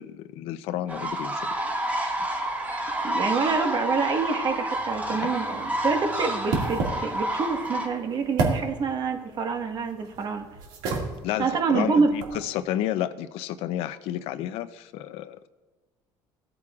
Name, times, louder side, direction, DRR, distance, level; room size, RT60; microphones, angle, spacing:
voice 1, 0.0-1.5 5.2-5.3 11.2-15.5, left 12 dB, 75° left, 13 dB, 0.6 m, -31 dB
sound 1, 0.9-7.9, right 1 dB, 15° right, 1.8 m, -29 dB
voice 2, 3.0-10.4 11.4-12.1, right 5 dB, 45° right, 4 dB, 1.5 m, -26 dB
sound 2, 4.7-12.4, right 3 dB, 90° right, 2.1 m, -33 dB
17.0 x 8.6 x 2.4 m, 1.2 s
cardioid pair, 115°, 10 cm